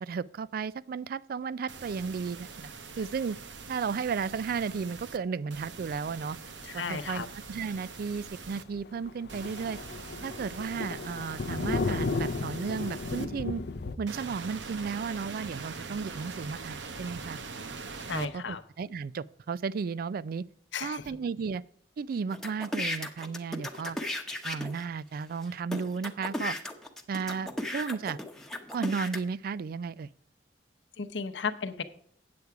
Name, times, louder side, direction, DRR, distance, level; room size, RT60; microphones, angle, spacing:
voice 1, 0.0-2.7 3.0-3.4 3.7-6.4 6.7-9.8 10.2-13.6 14.0-17.4 18.1-20.4 20.8-21.6 22.0-24.0 24.4-26.6 27.1-28.2 28.7-30.1, right 5 dB, 55° right, 0.3 m, -34 dB
sound 1, 1.7-5.2 5.5-8.6 9.3-13.2 14.1-18.3, right 4 dB, 85° right, 0.9 m, -43 dB
voice 2, 6.6-7.3 18.0-18.6 20.7-21.2 31.0-31.8, left 5 dB, 90° left, 0.8 m, -35 dB
Thunder, 7.0-7.2 7.5-7.6 8.0-8.1 8.4-8.5 8.7-14.0, left 3 dB, 65° left, 0.6 m, -34 dB
sound 2, 22.3-24.9 25.4-25.5 25.7-29.2, left 1 dB, 5° left, 0.9 m, -35 dB
8.6 x 8.1 x 4.7 m
head